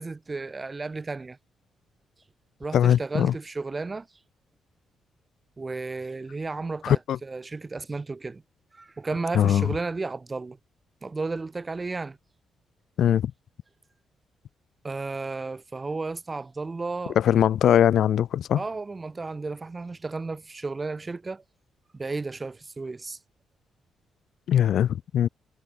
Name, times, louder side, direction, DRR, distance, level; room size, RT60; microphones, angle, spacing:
voice 1, 0.0-1.4 2.6-4.1 5.6-8.4 8.7-10.6 11.0-12.2 14.8-17.2 18.6-21.4 21.9-23.2, right 3 dB, 20° right, 3.3 m, -33 dB
voice 2, 2.7-3.3 6.8-7.2 9.3-9.7 13.0-13.3 17.1-18.6 24.5-25.3, left 10 dB, 65° left, 3.1 m, -21 dB
cardioid pair, 145°, 0 cm